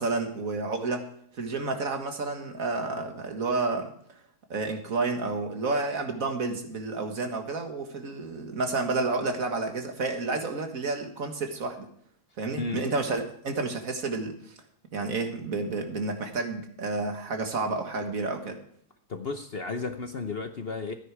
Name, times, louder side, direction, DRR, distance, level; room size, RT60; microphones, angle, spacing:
voice 1, 0.0-3.9 4.5-11.9 12.4-14.5 14.9-18.6, right 3 dB, 60° right, 5 dB, 2.0 m, -30 dB
voice 2, 12.6-12.9 19.1-20.9, left 4 dB, 45° left, 7 dB, 0.9 m, -33 dB
13.5 x 10.0 x 4.8 m, 0.65 s
omnidirectional pair, 1.7 m